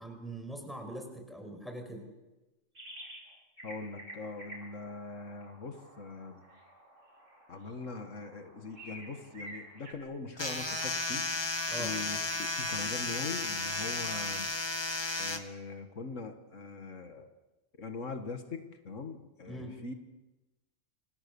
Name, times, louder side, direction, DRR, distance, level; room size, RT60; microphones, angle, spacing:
voice 1, 0.0-2.1 11.7-11.9 19.5-19.8, right 1 dB, ahead, 4 dB, 5.7 m, -42 dB
sound 1, 2.7-3.3 3.6-9.9, equal, 85° right, 6.0 m, -50 dB
voice 2, 3.6-6.4 7.5-11.4 11.8-14.5 15.2-17.3 17.8-19.9, left 3 dB, 80° left, 6 dB, 2.1 m, -42 dB
sound 2, 10.4-15.4, left 2 dB, 20° left, 2.0 m, -34 dB
29.0 x 26.0 x 7.1 m, 1.1 s
omnidirectional pair, 1.3 m